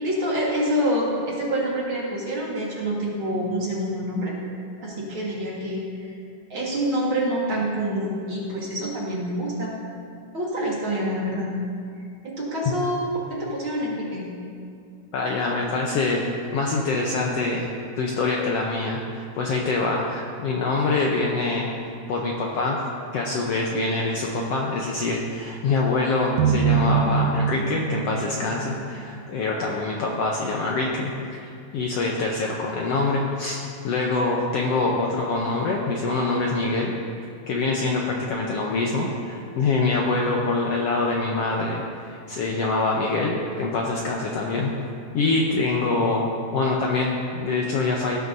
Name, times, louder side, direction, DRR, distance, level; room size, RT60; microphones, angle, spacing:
voice 1, 0.0-4.4 4.8-6.1 6.5-9.7 10.3-11.5 12.2-13.0 13.3-14.3, equal, 45° right, -5 dB, 2.2 m, -26 dB
voice 2, 15.1-16.3 16.5-17.7 18.0-21.7 22.1-22.8 23.1-31.1 31.4-36.9 37.5-44.7 45.1-48.2, left 3 dB, 70° left, -2 dB, 1.6 m, -25 dB
sound 1, 26.4-29.6, right 6 dB, 80° right, 2.0 m, -24 dB
18.0 x 10.5 x 2.7 m, 2.3 s
omnidirectional pair, 3.6 m